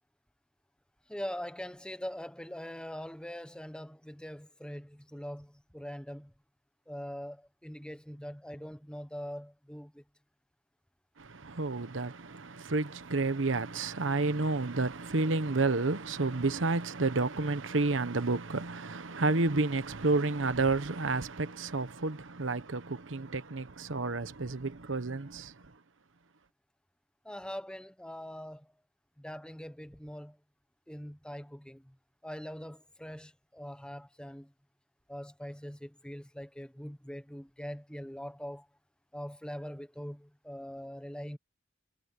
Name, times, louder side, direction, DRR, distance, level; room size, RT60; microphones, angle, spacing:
voice 1, 1.1-6.3 6.9-10.0 27.2-28.7 29.2-30.4 30.9-32.0 32.2-34.5 35.1-38.7 39.1-41.4, equal, 5° left, 1.3 m, -42 dB
voice 2, 11.2-25.5, right 3 dB, 75° right, 1.1 m, -30 dB
head